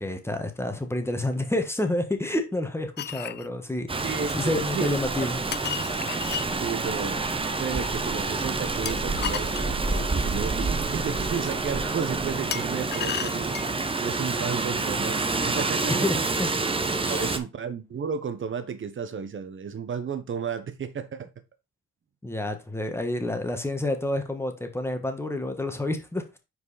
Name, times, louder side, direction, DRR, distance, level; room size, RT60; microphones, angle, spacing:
voice 1, 0.0-5.4 15.9-16.5 17.0-17.3 22.2-26.4, left 1 dB, 10° left, 1.3 m, -29 dB
sound 1, 3.0-3.5 5.5-6.5 8.9-10.3 12.5-13.8, left 9 dB, 35° left, 0.4 m, -34 dB
Rain, 3.9-17.4, right 3 dB, 20° right, 0.8 m, -28 dB
voice 2, 4.0-4.9 6.3-7.2 7.6-13.6 14.0-16.0 17.1-21.3, right 6 dB, 40° right, 1.0 m, -33 dB
5.4 x 4.7 x 4.1 m
cardioid pair, 90°, 30 cm